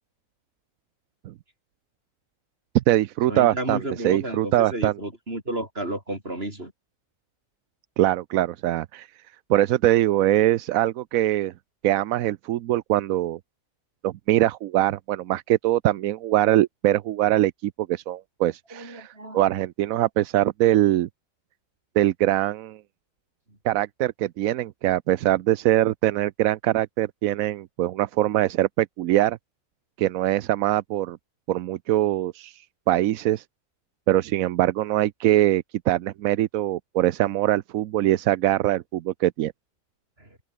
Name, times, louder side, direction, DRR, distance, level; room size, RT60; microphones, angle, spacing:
voice 1, 2.7-3.8 4.0-4.9 8.0-9.1 9.5-11.5 11.8-13.4 14.0-21.1 22.0-22.8 23.6-29.4 30.0-31.2 31.5-32.5 32.9-33.4 34.1-39.5, right 14 dB, 90° right, 1.1 m, -22 dB
voice 2, 3.3-6.7 18.7-19.4 23.5-23.6 40.2-40.4, right 1 dB, 45° right, 6.5 m, -32 dB
omnidirectional pair, 1.4 m